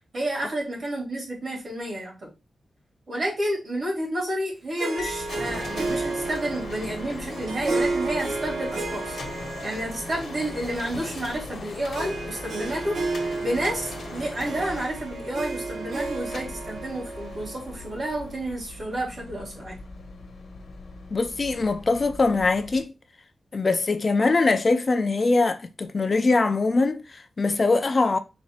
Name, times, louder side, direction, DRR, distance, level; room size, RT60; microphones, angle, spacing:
voice 1, 0.1-2.3 3.1-9.2 9.6-13.0 13.4-19.7, right 1 dB, 50° right, 2.4 m, -30 dB
Harp, 4.8-18.4, right 3 dB, 80° right, 0.8 m, -32 dB
sound 1, 5.0-22.8, left 3 dB, 70° left, 1.0 m, -39 dB
voice 2, 21.1-22.9 23.5-28.2, left 3 dB, 40° left, 0.4 m, -22 dB
4.1 x 2.6 x 4.2 m
wide cardioid pair, 115°, 0 cm